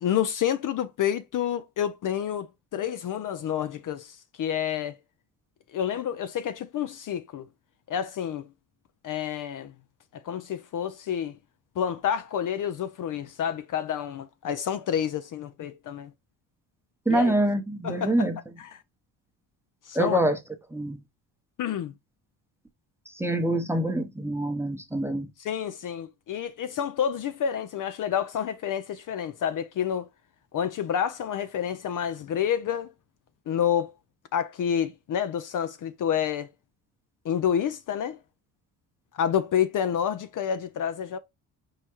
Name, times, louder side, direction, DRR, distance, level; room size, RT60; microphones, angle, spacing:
voice 1, 0.0-5.0 5.7-7.5 7.9-8.5 9.0-9.7 10.1-11.4 11.8-16.1 17.1-17.3 17.8-18.3 18.6-18.8 19.9-20.2 21.6-21.9 25.4-30.1 30.5-32.9 33.5-33.9 34.3-36.5 37.2-38.2 39.1-41.2, left 9 dB, 50° left, 0.5 m, -29 dB
voice 2, 17.1-18.4 19.9-20.4 20.7-21.0 23.2-25.3, right 1 dB, 5° right, 0.8 m, -25 dB
4.8 x 2.2 x 4.2 m
supercardioid pair, 75°, 42 cm